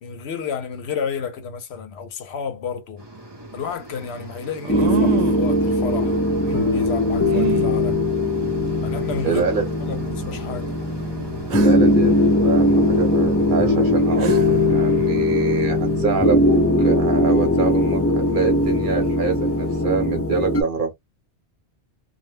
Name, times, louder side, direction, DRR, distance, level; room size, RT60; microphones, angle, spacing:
voice 1, 0.0-3.0 3.5-8.0 8.8-9.4 9.8-10.7, left 6 dB, 70° left, 0.9 m, -31 dB
sound 1, 3.0-19.8, right 1 dB, 25° right, 0.7 m, -38 dB
sound 2, 3.2-3.3 4.6-5.5 7.3-7.7 8.7-8.8 9.3-9.4 11.5-11.9 13.8-13.9 14.2-14.7, right 11 dB, 75° right, 0.9 m, -28 dB
sound 3, 4.7-20.6, left 1 dB, 20° left, 0.3 m, -20 dB
voice 2, 9.2-9.7 11.5-20.9, right 5 dB, 50° right, 1.0 m, -25 dB
2.3 x 2.1 x 3.1 m
omnidirectional pair, 1.1 m